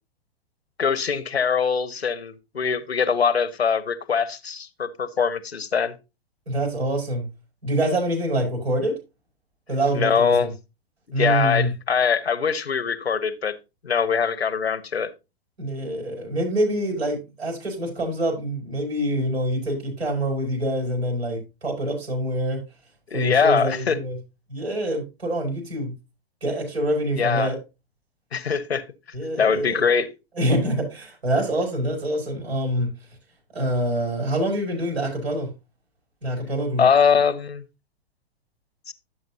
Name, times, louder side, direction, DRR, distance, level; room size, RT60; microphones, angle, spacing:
voice 1, 0.8-5.9 9.9-10.5 11.2-13.5 13.8-15.1 23.1-24.0 27.2-27.5 28.3-28.8 29.4-30.1 36.8-37.6 38.9-39.0, left 6 dB, 85° left, 1.1 m, -22 dB
voice 2, 6.5-7.2 7.6-8.9 9.7-10.5 11.1-11.7 15.6-22.6 23.1-24.2 24.5-25.9 26.4-27.6 29.1-29.8 30.4-32.9 33.5-35.5 36.2-36.8, right 1 dB, 80° right, 5.6 m, -25 dB
11.0 x 7.4 x 2.8 m
figure-of-eight pair, 110°, 31 cm